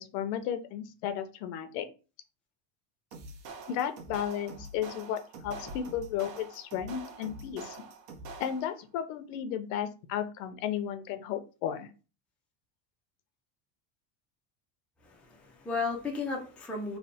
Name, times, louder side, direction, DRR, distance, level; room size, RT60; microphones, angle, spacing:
voice 1, 0.0-1.9 3.7-7.8 8.4-11.9, left 9 dB, 80° left, 9 dB, 0.8 m, -34 dB
sound 1, 3.1-8.8, right 3 dB, 60° right, 1.0 m, -45 dB
voice 2, 15.0-17.0, left 4 dB, 5° left, -1 dB, 0.3 m, -34 dB
3.3 x 2.1 x 4.1 m, 0.33 s
cardioid pair, 150°, 48 cm